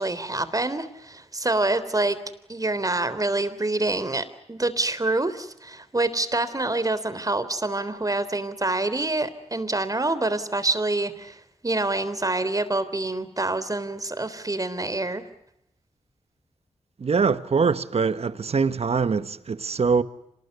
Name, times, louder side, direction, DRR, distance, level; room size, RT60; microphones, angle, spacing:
voice 1, 0.0-2.2 2.5-15.2, right 2 dB, 30° right, 3.5 m, -26 dB
voice 2, 17.0-20.0, right 5 dB, 65° right, 1.4 m, -23 dB
26.5 x 20.0 x 9.4 m
cardioid pair, 45°, 11 cm